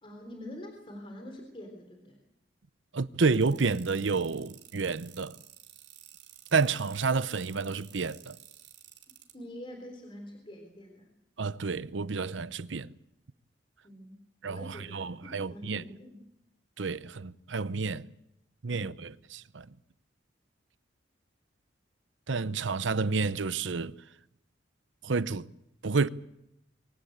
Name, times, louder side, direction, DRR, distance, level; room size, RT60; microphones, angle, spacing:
voice 1, 0.0-2.2 9.3-11.1 13.8-14.2 14.5-16.2 18.6-19.0, left 1 dB, 30° left, 3.7 m, -45 dB
voice 2, 2.9-5.4 6.5-8.4 11.4-12.9 14.4-15.8 16.8-18.1 18.6-19.8 22.3-23.9 25.0-25.5 25.8-26.1, right 4 dB, 85° right, 0.8 m, -30 dB
sound 1, 3.3-9.3, right 12 dB, 60° right, 3.7 m, -52 dB
24.0 x 16.5 x 8.9 m
head